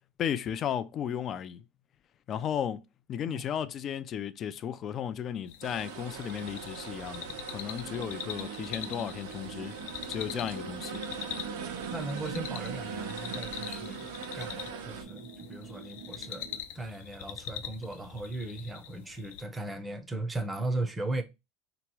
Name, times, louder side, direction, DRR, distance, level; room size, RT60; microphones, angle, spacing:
voice 1, 0.2-1.6 2.3-2.8 3.1-9.7 10.1-11.0, left 9 dB, 30° left, 0.3 m, -34 dB
sound 1, 5.5-19.4, left 10 dB, 75° left, 0.6 m, -44 dB
sound 2, 5.6-15.0, right 6 dB, 80° right, 0.8 m, -42 dB
sound 3, 7.8-16.6, right 6 dB, 60° right, 1.0 m, -43 dB
voice 2, 11.9-16.5 16.7-21.2, right 2 dB, 10° right, 0.6 m, -37 dB
3.4 x 3.0 x 4.6 m
cardioid pair, 155°, 0 cm